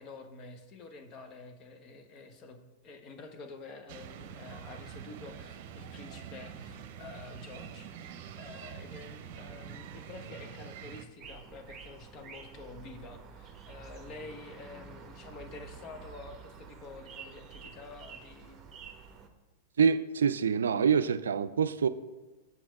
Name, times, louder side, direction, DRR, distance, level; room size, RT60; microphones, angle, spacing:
voice 1, 0.0-18.6, left 3 dB, 40° left, 1.1 m, -48 dB
sound 1, 3.9-11.0, right 8 dB, 55° right, 0.8 m, -45 dB
sound 2, 11.2-19.3, right 6 dB, 25° right, 1.0 m, -49 dB
voice 2, 19.8-21.9, right 6 dB, 80° right, 0.4 m, -26 dB
7.6 x 6.3 x 4.6 m
hypercardioid pair, 105°, 0 cm